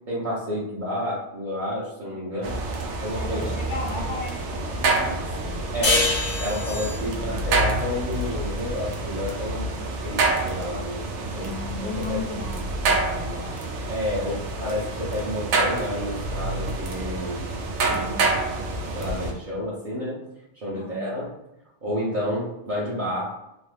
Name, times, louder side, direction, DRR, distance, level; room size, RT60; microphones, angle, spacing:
voice 1, 0.1-2.5 3.0-3.5 5.7-9.7 10.0-11.0 11.3-11.5 11.8-12.3 13.9-17.4 17.8-18.1 18.9-20.2 20.5-21.3 21.8-23.4, left 1 dB, 50° right, -7 dB, 0.8 m, -30 dB
voice 2, 2.1-2.5 3.2-5.6 6.9-7.4 9.8-10.0 11.3-13.8 17.9-18.3 20.7-21.1, left 3 dB, 80° left, -6 dB, 1.0 m, -37 dB
sound 1, 2.4-19.3, right 2 dB, 85° right, 0.9 m, -28 dB
sound 2, 5.8-9.0, left 3 dB, 45° left, 0.7 m, -26 dB
3.0 x 2.0 x 3.1 m, 0.87 s
omnidirectional pair, 1.1 m